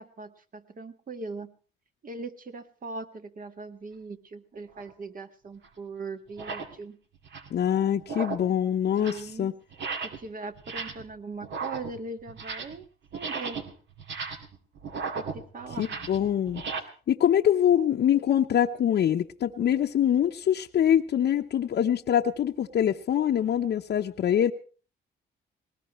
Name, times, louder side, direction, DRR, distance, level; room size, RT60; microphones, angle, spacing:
voice 1, 0.0-1.5 2.0-7.0 9.0-9.5 10.0-12.9 13.1-13.6 15.1-15.9, right 3 dB, 45° right, 7 dB, 1.8 m, -40 dB
sound 1, 4.7-4.9 5.6-5.7 6.3-6.8 7.1-7.6 8.0-8.6 8.9-9.3 9.7-10.3 10.6-11.1 11.4-12.8 13.1-16.8, right 4 dB, 65° right, 2.3 m, -36 dB
voice 2, 7.5-9.5 15.8-16.6 17.1-24.5, left 10 dB, 55° left, 2 dB, 0.9 m, -24 dB
20.0 x 20.0 x 3.1 m, 0.37 s
cardioid pair, 90°, 20 cm